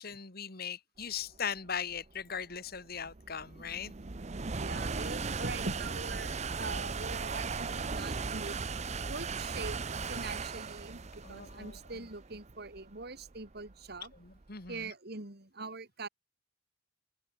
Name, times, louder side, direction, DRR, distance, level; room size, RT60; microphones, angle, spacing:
voice 1, 0.0-3.9 11.2-12.1 14.2-14.9, left 7 dB, 55° left, 2.3 m, -39 dB
sound 1, 1.3-14.7, right 4 dB, 40° right, 0.8 m, -38 dB
voice 2, 4.6-8.6 9.1-9.8 10.1-14.1 14.7-16.1, right 3 dB, 60° right, 2.7 m, -42 dB
open air
head